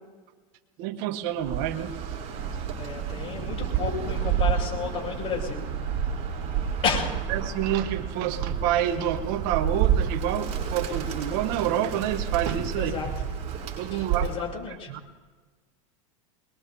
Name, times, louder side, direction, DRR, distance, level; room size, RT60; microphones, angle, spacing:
voice 1, 0.8-1.9 7.3-12.9 13.8-14.3 14.9-15.0, right 11 dB, 60° right, 8 dB, 1.3 m, -28 dB
Bird, 1.4-14.5, right 8 dB, 40° right, 6.8 m, -30 dB
voice 2, 2.8-5.7 6.8-7.1 12.8-13.1 13.9-14.9, left 6 dB, 35° left, -2 dB, 6.4 m, -31 dB
sound 1, 3.0-13.4, left 2 dB, 10° left, 5.1 m, -45 dB
23.5 x 21.5 x 2.8 m, 1.3 s
hypercardioid pair, 105°, 17 cm